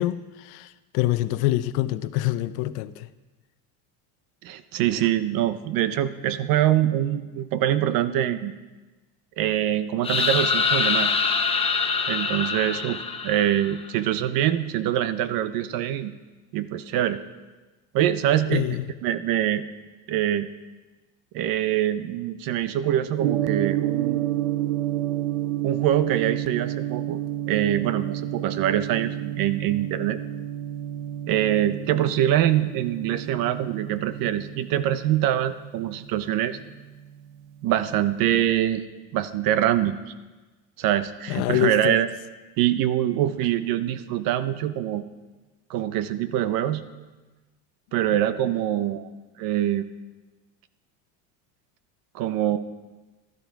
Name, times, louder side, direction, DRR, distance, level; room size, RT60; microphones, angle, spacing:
voice 1, 0.0-3.1 18.5-18.9 41.3-42.0, left 15 dB, 65° left, 0.8 m, -25 dB
voice 2, 4.4-8.5 9.4-11.2 12.1-16.1 16.5-17.2 17.9-18.6 19.0-19.6 20.1-20.5 21.3-24.2 25.6-27.2 27.5-30.2 31.3-36.6 37.6-38.8 39.1-40.0 40.8-42.1 42.6-45.0 45.7-46.8 47.9-49.1 49.4-49.8 52.1-52.6, right 12 dB, 55° right, 0.9 m, -24 dB
sound 1, 10.0-13.9, left 5 dB, 15° left, 1.0 m, -24 dB
Gong, 23.2-37.4, right 12 dB, 90° right, 0.8 m, -30 dB
15.5 x 12.5 x 4.7 m
supercardioid pair, 130°, 40 cm